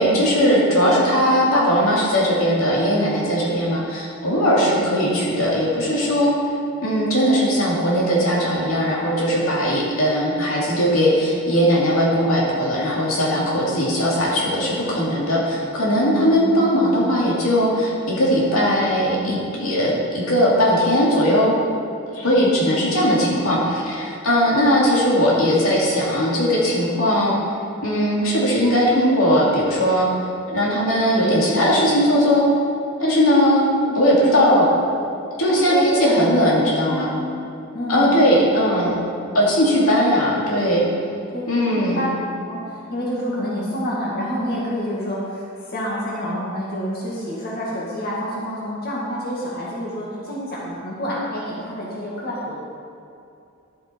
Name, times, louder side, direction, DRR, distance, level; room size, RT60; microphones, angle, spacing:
voice 1, 0.0-6.3 6.8-21.5 22.1-27.4 27.8-30.1 30.5-32.5 33.0-33.6 33.9-34.7 35.4-37.1 37.9-39.0 39.3-40.8 41.5-42.0, equal, 80° left, -5 dB, 2.6 m, -19 dB
voice 2, 4.6-5.1 16.1-16.7 22.2-22.8 23.0-23.2 33.3-33.4 33.8-34.0 34.6-34.8 35.5-36.4 36.9-37.2 37.7-38.2 41.3-41.4 41.7-42.1 42.4-52.5, equal, 45° left, -5 dB, 1.9 m, -28 dB
11.0 x 8.4 x 4.5 m, 2.6 s
head